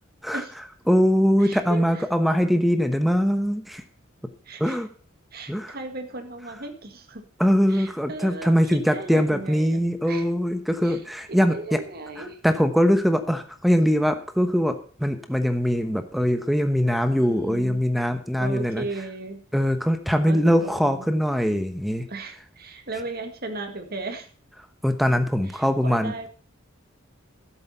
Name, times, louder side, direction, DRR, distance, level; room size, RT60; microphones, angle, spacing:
voice 1, 0.9-3.8 4.6-4.9 5.5-5.8 7.4-11.8 12.2-18.8 19.5-22.1 24.8-26.3, equal, ahead, 8 dB, 0.9 m, -22 dB
voice 2, 1.4-2.0 4.5-4.8 5.3-7.2 7.7-10.3 10.8-11.0 11.3-12.4 17.2-17.8 18.4-19.4 20.3-21.1 22.1-24.3 25.5-26.3, right 2 dB, 50° right, 6 dB, 1.9 m, -36 dB
11.5 x 8.1 x 5.5 m, 0.42 s
head